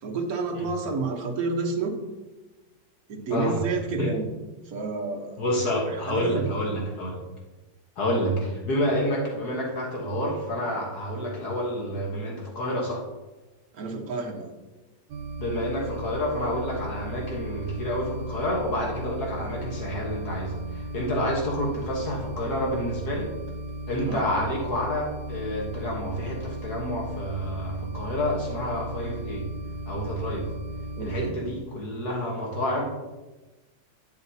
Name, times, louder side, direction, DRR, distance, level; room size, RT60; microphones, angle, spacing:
voice 1, 0.0-2.0 3.1-4.3 4.6-5.4 5.8-6.5 13.7-14.5 24.0-24.2 30.9-31.3, right 3 dB, 60° right, 2 dB, 1.6 m, -30 dB
voice 2, 3.3-3.6 4.0-4.1 5.4-7.2 8.0-13.1 15.4-23.3 23.9-29.5 29.9-30.5 31.0-32.8, equal, 65° left, -1 dB, 1.9 m, -29 dB
sound 1, 15.1-31.3, right 1 dB, 90° right, 1.4 m, -36 dB
11.0 x 8.0 x 2.8 m, 1.1 s
omnidirectional pair, 1.9 m